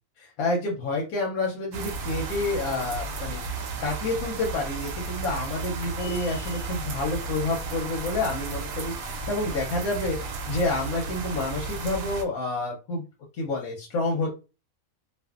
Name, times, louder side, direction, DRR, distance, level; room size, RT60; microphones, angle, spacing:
voice 1, 0.2-10.2 10.4-13.0 13.4-14.3, left 2 dB, 85° left, -1 dB, 1.1 m, -29 dB
sound 1, 1.7-12.2, right 4 dB, 75° right, 1.0 m, -34 dB
sound 2, 6.0-6.8, right 2 dB, 10° left, 1.0 m, -39 dB
2.5 x 2.4 x 2.3 m, 0.30 s
omnidirectional pair, 1.5 m